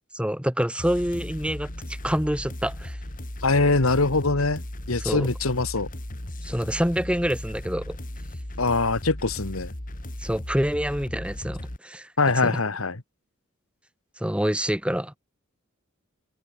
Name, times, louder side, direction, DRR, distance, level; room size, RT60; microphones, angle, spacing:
voice 1, 0.1-3.0 5.0-5.3 6.4-8.0 10.2-12.1 12.4-12.6 14.2-15.2, equal, 5° right, 6.2 m, -27 dB
sound 1, 0.8-11.8, left 1 dB, 40° left, 2.5 m, -36 dB
voice 2, 3.4-5.9 8.6-9.7 12.2-13.0, left 3 dB, 90° left, 1.8 m, -23 dB
head